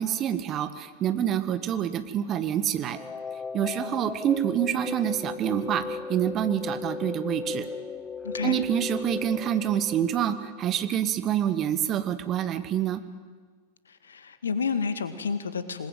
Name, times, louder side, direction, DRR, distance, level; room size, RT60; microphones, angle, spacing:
voice 1, 0.0-3.0 3.5-7.7 8.4-13.0, right 10 dB, 30° right, 11 dB, 1.6 m, -27 dB
sound 1, 2.9-10.9, left 4 dB, 15° left, 0.8 m, -36 dB
voice 2, 8.2-8.6 13.9-15.9, left 5 dB, 70° left, 11 dB, 2.0 m, -30 dB
27.0 x 20.5 x 9.1 m, 1.5 s
figure-of-eight pair, 90°, 0 cm